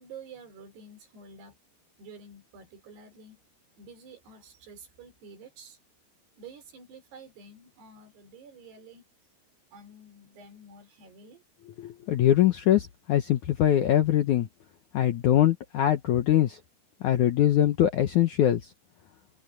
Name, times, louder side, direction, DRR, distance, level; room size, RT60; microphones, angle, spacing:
voice 1, 0.0-1.6 2.0-3.4 3.8-5.8 6.4-9.0 9.7-11.4, right 4 dB, 75° right, 6.3 m, -49 dB
voice 2, 11.8-14.5 14.9-16.6 17.0-18.7, left 12 dB, 70° left, 1.8 m, -23 dB
omnidirectional pair, 4.8 m